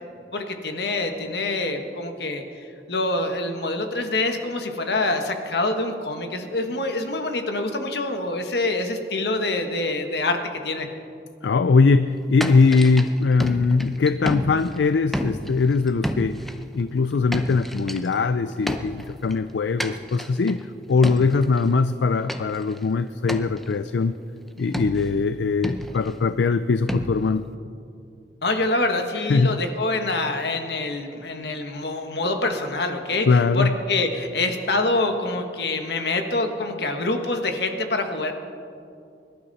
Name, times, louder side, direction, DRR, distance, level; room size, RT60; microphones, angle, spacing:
voice 1, 0.3-2.4 2.9-10.9 28.4-38.3, left 2 dB, 70° left, 5 dB, 1.4 m, -26 dB
voice 2, 11.4-16.4 16.7-24.1 24.6-27.4 29.3-29.6 33.3-33.7, left 4 dB, 85° left, 12 dB, 0.4 m, -21 dB
sound 1, 12.4-14.8 15.1-16.6 17.1-18.2 18.7-19.4 19.8-20.6 21.0-21.7 22.3-22.8 23.3-23.7 24.7-25.3 25.6-26.2 26.9-27.5, equal, ahead, 0.6 m, -31 dB
24.0 x 12.0 x 4.1 m, 2.5 s
head